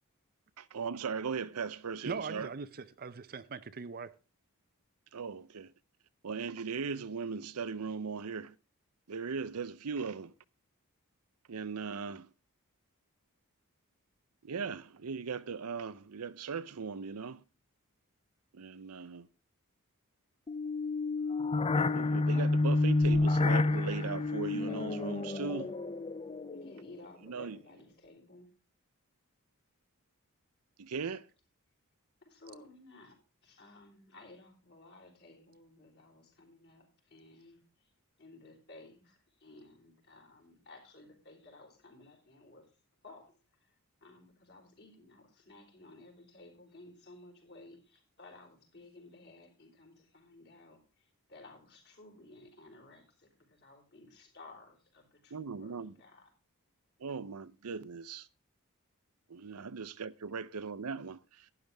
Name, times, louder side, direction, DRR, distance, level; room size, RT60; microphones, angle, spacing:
voice 1, 0.6-2.5 5.1-5.7 6.2-8.5 9.1-10.3 11.5-12.3 14.4-17.4 18.5-19.3 21.7-25.7 27.2-27.6 30.8-31.3 55.3-56.0 57.0-58.3 59.3-61.5, right 5 dB, 90° right, 0.7 m, -38 dB
voice 2, 2.1-4.1, right 4 dB, 40° right, 0.6 m, -40 dB
sound 1, 20.5-26.9, left 2 dB, 25° left, 0.4 m, -29 dB
voice 3, 26.5-28.5 32.2-33.2 33.4-37.6 38.2-42.7 43.0-43.3 44.0-50.8 51.3-56.3, left 2 dB, 50° left, 3.9 m, -55 dB
12.0 x 10.5 x 3.5 m
head